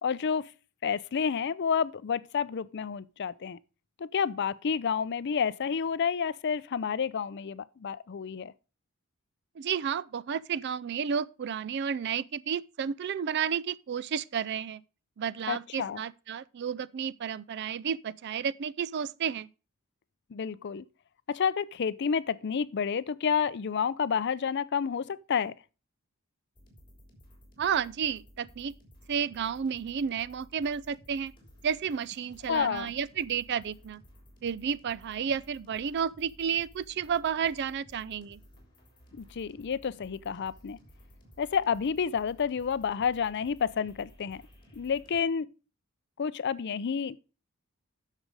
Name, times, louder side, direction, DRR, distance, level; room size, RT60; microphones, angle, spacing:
voice 1, 0.0-0.5 0.8-3.6 4.0-8.5 15.5-16.0 20.3-20.8 21.3-25.5 32.5-32.9 39.1-40.8 41.4-44.4 44.7-45.5 46.2-47.2, left 6 dB, 55° left, 0.5 m, -30 dB
voice 2, 9.6-14.8 15.2-19.5 27.6-28.7 29.1-31.3 31.6-34.0 34.4-38.4, right 7 dB, 55° right, 0.4 m, -32 dB
sound 1, 26.5-45.2, equal, 20° left, 3.5 m, -56 dB
10.0 x 6.6 x 4.8 m
head